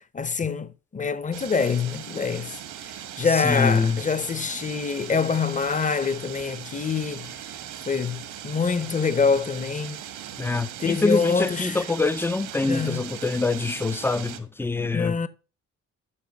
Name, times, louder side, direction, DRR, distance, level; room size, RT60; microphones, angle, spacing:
voice 1, 0.1-2.5 3.2-7.4 7.9-10.0 10.8-11.8 12.6-13.0 14.8-15.3, left 5 dB, 25° left, 0.8 m, -25 dB
sound 1, 1.3-14.4, right 10 dB, 90° right, 1.4 m, -39 dB
voice 2, 3.4-4.0 10.4-15.2, left 3 dB, 10° left, 0.4 m, -25 dB
8.8 x 5.7 x 5.3 m
cardioid pair, 90°, 30 cm